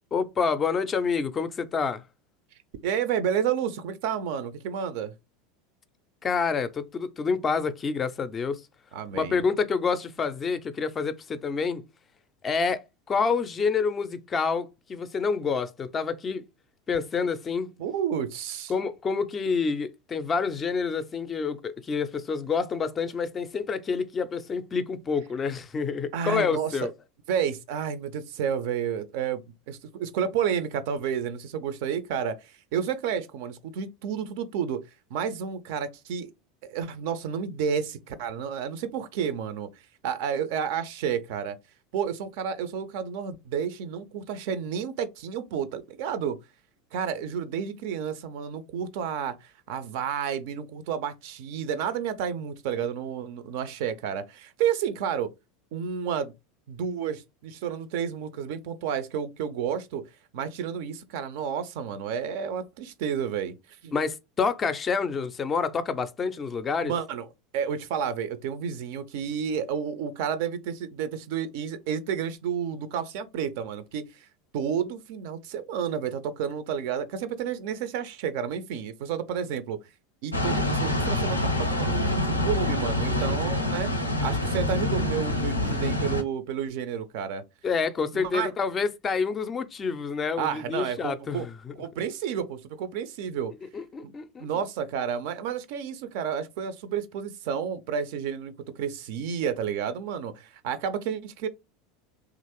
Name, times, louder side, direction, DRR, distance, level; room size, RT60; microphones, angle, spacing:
voice 1, 0.1-2.0 6.2-8.6 9.1-11.8 12.4-16.4 16.9-17.7 18.7-26.9 63.9-66.9 87.6-91.7 93.7-94.5, left 5 dB, 25° left, 0.4 m, -28 dB
voice 2, 2.8-5.1 8.9-9.4 17.8-18.7 26.1-26.8 27.3-29.4 29.7-34.8 35.1-36.3 36.6-39.7 40.0-41.6 41.9-46.4 46.9-55.3 55.7-56.3 56.7-60.0 60.3-63.5 63.8-63.9 66.8-67.3 67.5-74.3 74.5-79.8 80.2-83.9 84.2-87.4 88.1-88.5 90.4-91.5 91.8-93.5 94.0-94.1 94.4-101.5, right 8 dB, 55° right, 0.4 m, -31 dB
sound 1, 80.3-86.2, left 1 dB, 85° left, 0.4 m, -26 dB
3.0 x 2.4 x 2.9 m
figure-of-eight pair, 80°, 0 cm